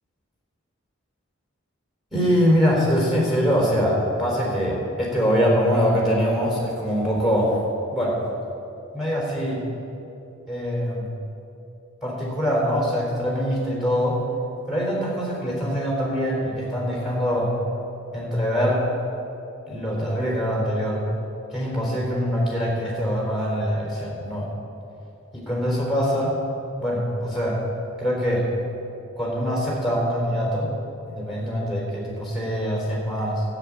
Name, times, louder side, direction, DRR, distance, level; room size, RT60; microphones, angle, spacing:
voice 1, 2.1-7.6 7.9-8.2 8.9-9.6 10.5-11.1 12.0-14.2 14.7-17.5 18.1-18.9 19.7-21.1 21.5-24.5 25.3-26.4 26.8-27.6 28.0-28.5 29.2-30.8 31.1-33.4, equal, ahead, -4 dB, 4.0 m, -23 dB
13.0 x 7.7 x 9.7 m, 2.9 s
head